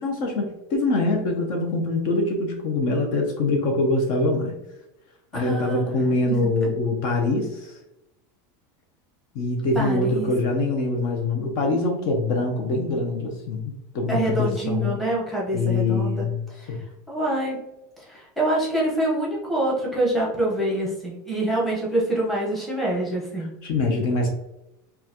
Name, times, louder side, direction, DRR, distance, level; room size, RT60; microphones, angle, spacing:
voice 1, 0.0-4.6 5.3-7.8 9.3-15.0 15.5-16.4 16.7-16.8 23.6-24.3, left 2 dB, 45° left, 2 dB, 0.7 m, -24 dB
voice 2, 5.3-5.8 6.3-6.5 9.7-10.3 14.1-16.3 16.6-17.6 18.0-23.5, right 1 dB, ahead, -5 dB, 1.0 m, -26 dB
5.5 x 2.4 x 2.9 m, 0.90 s
supercardioid pair, 165°, 11 cm